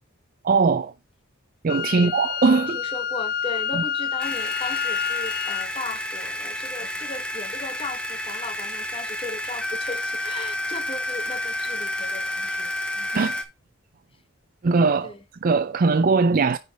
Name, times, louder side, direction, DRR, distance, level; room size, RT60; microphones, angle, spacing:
voice 1, 0.4-0.9 1.6-2.8 3.7-3.8 13.1-13.4 14.6-15.1 15.4-16.6, right 4 dB, 40° right, 0.4 m, -20 dB
Wind instrument woodwind instrument, 1.7-5.7, left 8 dB, 45° left, 0.3 m, -28 dB
voice 2, 2.7-12.7 13.0-13.1 15.0-15.2, left 3 dB, 25° left, 1.2 m, -36 dB
sound 1, 4.2-13.4, left 1 dB, 5° left, 1.1 m, -30 dB
9.7 x 4.1 x 5.0 m
head